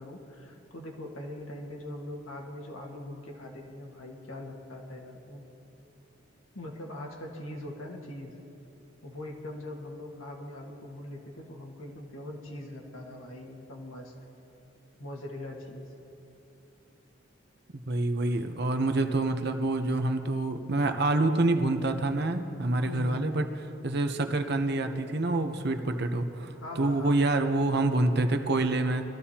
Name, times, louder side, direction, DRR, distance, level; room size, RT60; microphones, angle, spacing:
voice 1, 0.0-5.4 6.6-8.4 9.0-14.1 15.0-15.9 22.8-23.3 26.5-27.4, left 1 dB, 80° left, 1 dB, 1.7 m, -41 dB
voice 2, 17.9-23.5 23.8-29.0, right 2 dB, 50° right, 6 dB, 0.8 m, -27 dB
22.5 x 14.0 x 2.9 m, 2.8 s
head